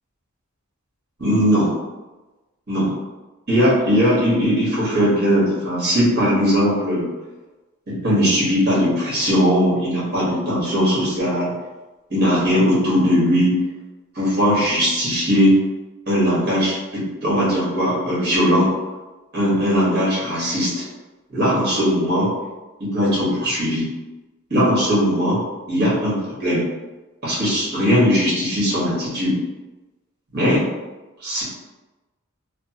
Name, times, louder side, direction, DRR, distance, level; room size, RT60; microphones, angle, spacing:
voice 1, 1.2-1.7 2.7-2.9 3.5-7.1 7.9-11.5 12.1-13.5 14.1-15.5 16.1-18.7 19.3-20.8 21.3-22.3 22.8-23.8 24.5-25.4 25.7-26.6 27.2-29.4 30.3-30.6 31.2-31.4, equal, 50° right, -7 dB, 1.4 m, -19 dB
3.2 x 2.0 x 2.9 m, 1.1 s
head